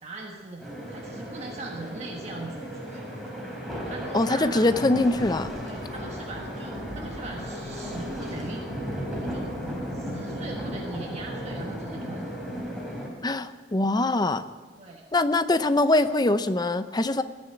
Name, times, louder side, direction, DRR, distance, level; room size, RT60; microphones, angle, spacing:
voice 1, 0.0-3.1 3.8-4.7 5.6-9.5 9.9-12.3 14.8-15.0, right 2 dB, 40° right, 0 dB, 1.4 m, -40 dB
sound 1, 0.6-13.1, equal, ahead, 4.0 m, -35 dB
voice 2, 4.1-5.5 13.2-14.4 15.1-17.2, left 2 dB, 25° left, 11 dB, 0.7 m, -23 dB
19.5 x 7.2 x 9.9 m, 1.4 s
head